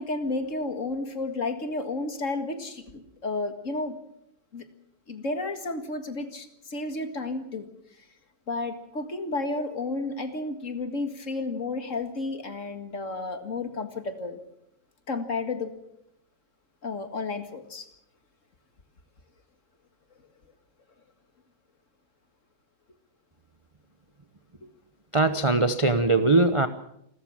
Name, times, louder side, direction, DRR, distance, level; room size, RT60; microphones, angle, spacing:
voice 1, 0.0-4.0 4.5-4.6 5.1-7.7 8.5-14.4 15.1-15.7 16.8-17.9 25.5-25.6, left 3 dB, 45° left, 7 dB, 2.2 m, -32 dB
voice 2, 25.1-26.7, right 3 dB, 25° right, 9 dB, 0.7 m, -21 dB
28.0 x 13.5 x 7.4 m, 0.78 s
omnidirectional pair, 1.9 m